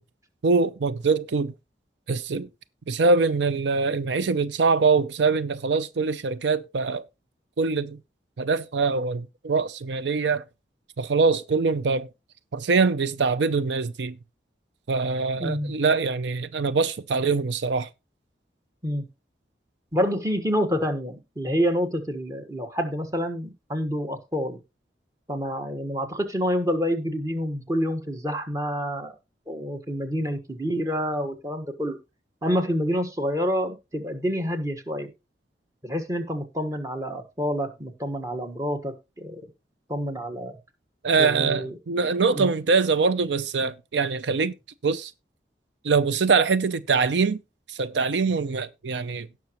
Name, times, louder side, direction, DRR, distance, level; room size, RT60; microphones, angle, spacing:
voice 1, 0.4-1.5 2.1-2.5 2.9-7.0 7.6-8.0 8.4-10.4 11.0-12.1 12.5-14.2 14.9-17.9 41.0-44.5 44.8-45.1 45.8-47.4 47.7-49.3, right 4 dB, 85° right, 0.5 m, -23 dB
voice 2, 15.4-15.8 18.8-19.0 19.9-24.6 25.3-29.1 29.5-32.0 32.4-35.1 35.8-39.4 39.9-40.6 41.2-41.7 42.3-42.5, equal, 20° right, 1.4 m, -28 dB
17.5 x 6.1 x 3.0 m
head